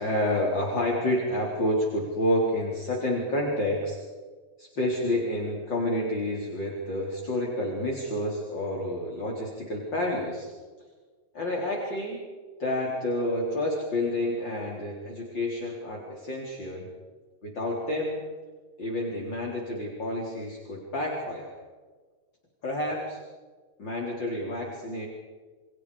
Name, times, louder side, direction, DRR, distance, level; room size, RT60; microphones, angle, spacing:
voice 1, 0.0-4.0 4.6-10.5 11.3-12.2 12.6-16.9 17.4-18.2 18.8-21.5 22.6-23.2 23.8-25.1, left 1 dB, 40° left, -2 dB, 4.7 m, -29 dB
29.5 x 29.5 x 5.1 m, 1.4 s
omnidirectional pair, 3.3 m